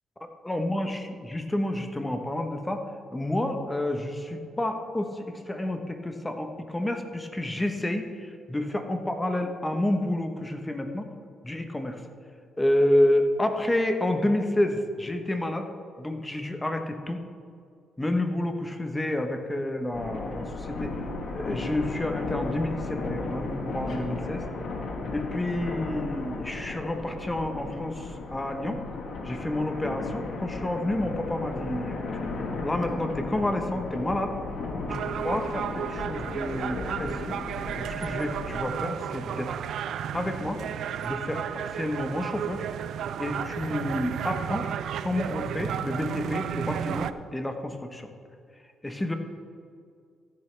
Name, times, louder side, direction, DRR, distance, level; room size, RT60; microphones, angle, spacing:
voice 1, 0.4-2.8 3.1-11.1 11.4-12.0 12.6-15.7 16.0-17.2 18.0-21.0 21.3-24.4 25.1-28.8 29.2-32.0 32.6-34.4 34.9-37.3 37.8-39.5 40.1-40.6 41.0-42.6 43.2-44.7 45.0-48.1 48.8-49.1, left 1 dB, 15° left, 6 dB, 1.1 m, -29 dB
sound 1, 19.9-38.7, left 3 dB, 55° left, 1.5 m, -35 dB
sound 2, 34.9-47.1, right 9 dB, 70° right, 0.4 m, -33 dB
14.5 x 9.1 x 3.4 m, 2.3 s
cardioid pair, 90°, 0 cm